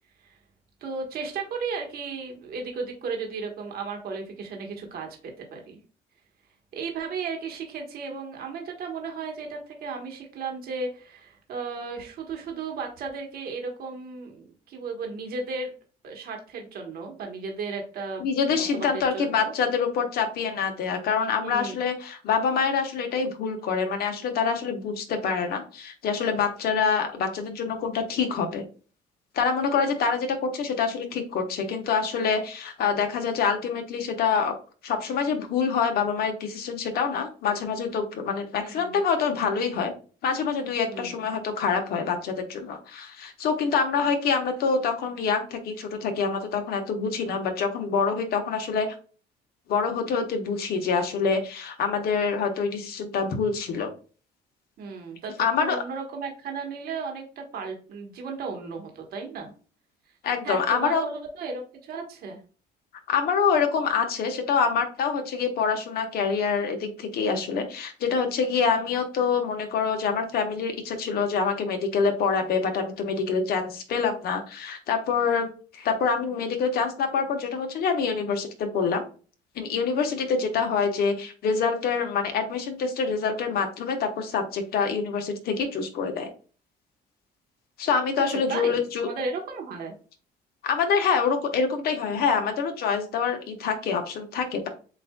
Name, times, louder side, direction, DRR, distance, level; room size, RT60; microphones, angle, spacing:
voice 1, 0.8-5.8 6.7-15.7 16.0-19.5 21.4-21.8 38.6-39.0 40.9-41.2 54.8-59.5 60.4-62.4 88.3-89.9, right 4 dB, 65° right, 2 dB, 1.4 m, -35 dB
voice 2, 18.2-28.6 29.3-34.6 34.8-39.9 40.2-48.9 49.7-53.9 55.4-55.8 60.2-61.0 63.1-79.0 79.5-86.3 87.8-89.1 90.6-94.7, left 5 dB, 65° left, 5 dB, 1.2 m, -26 dB
7.6 x 2.6 x 2.3 m, 0.38 s
cardioid pair, 110°, 17 cm